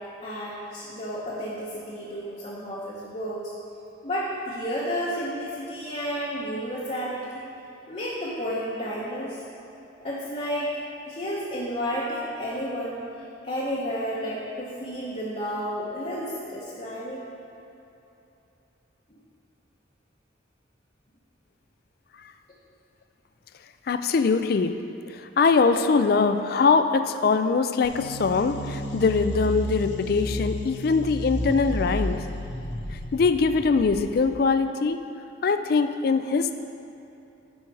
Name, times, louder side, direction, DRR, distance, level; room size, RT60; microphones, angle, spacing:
voice 1, 0.2-3.5 4.0-7.5 7.9-9.4 10.0-10.7 11.1-17.2 19.1-19.2, equal, 35° left, -7 dB, 0.9 m, -31 dB
voice 2, 23.9-24.8 25.1-32.2 33.1-35.0 35.4-36.6, left 4 dB, 50° left, 9 dB, 0.3 m, -22 dB
sound 1, 27.8-34.4, equal, 65° left, 0.8 m, -32 dB
10.5 x 4.7 x 4.7 m, 2.9 s
head